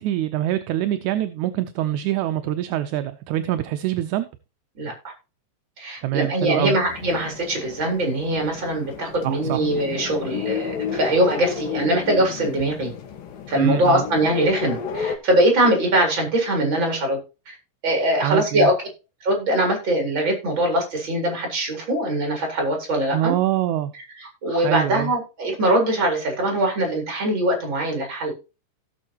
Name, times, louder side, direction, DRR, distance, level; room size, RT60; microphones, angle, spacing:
voice 1, 0.0-4.3 6.0-6.8 9.2-9.6 13.5-14.0 18.2-18.7 23.1-23.9 24.6-25.1, right 13 dB, 75° right, 10 dB, 1.9 m, -24 dB
voice 2, 5.8-12.9 13.5-17.2 17.5-17.6 17.8-18.8 19.2-23.3 24.2-28.3, right 1 dB, 35° right, 1 dB, 4.4 m, -22 dB
sound 1, 6.8-15.2, left 6 dB, 90° left, 3.2 m, -31 dB
16.5 x 7.0 x 2.9 m, 0.31 s
omnidirectional pair, 3.8 m